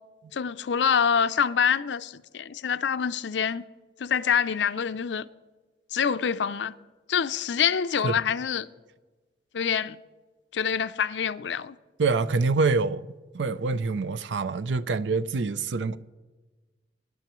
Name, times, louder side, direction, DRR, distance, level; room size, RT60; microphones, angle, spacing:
voice 1, 0.3-3.6 4.0-5.3 5.9-6.7 7.1-8.7 9.5-10.0 10.5-11.8, left 7 dB, 80° left, 0.5 m, -26 dB
voice 2, 12.0-13.1 13.3-16.0, right 4 dB, 85° right, 0.5 m, -25 dB
23.0 x 10.5 x 3.1 m
head